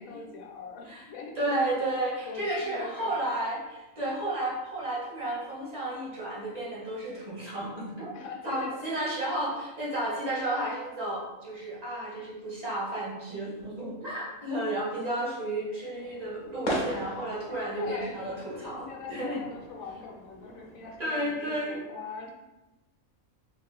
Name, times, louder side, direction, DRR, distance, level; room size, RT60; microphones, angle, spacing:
voice 1, 0.0-1.5 2.2-3.3 8.1-9.0 9.5-9.6 15.4-15.8 17.3-22.3, left 4 dB, 80° left, -1 dB, 1.1 m, -42 dB
voice 2, 1.4-8.1 8.4-19.4 21.0-21.8, right 1 dB, 30° right, -6 dB, 1.1 m, -32 dB
sound 1, 15.9-21.0, equal, 50° left, 0.5 m, -38 dB
3.4 x 2.7 x 2.3 m, 1.0 s
omnidirectional pair, 1.4 m